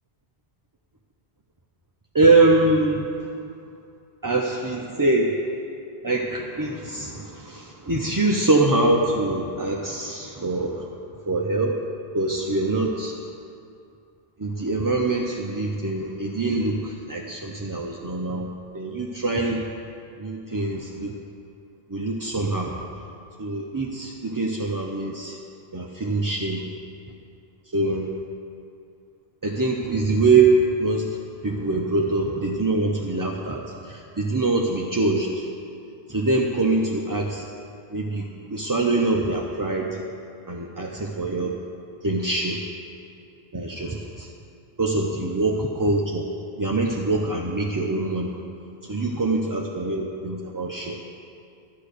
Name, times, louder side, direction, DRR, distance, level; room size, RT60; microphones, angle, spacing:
voice 1, 2.1-3.3 4.2-5.4 6.0-10.9 11.3-11.8 12.1-13.2 14.4-18.5 18.7-19.7 20.2-21.1 21.9-22.8 23.4-25.4 25.7-26.7 27.7-28.1 29.4-31.2 31.4-35.5 36.1-37.5 37.9-40.0 40.5-41.6 42.0-42.6 43.5-44.3 44.8-46.2 46.6-48.4 48.8-51.0, right 2 dB, 20° right, -1 dB, 0.6 m, -24 dB
12.0 x 9.4 x 6.7 m, 2.5 s
omnidirectional pair, 1.1 m